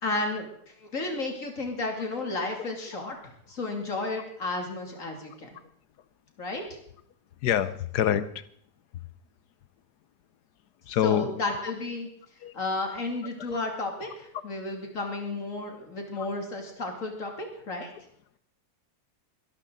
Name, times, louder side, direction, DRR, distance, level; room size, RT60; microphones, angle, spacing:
voice 1, 0.0-5.5 6.4-6.6 11.0-12.1 12.5-17.9, left 2 dB, 55° left, 2 dB, 3.1 m, -33 dB
voice 2, 7.4-8.4 10.9-11.4 12.4-12.5 13.5-13.6, left 10 dB, 80° left, 14 dB, 1.4 m, -26 dB
23.5 x 12.0 x 3.9 m, 0.64 s
omnidirectional pair, 1.7 m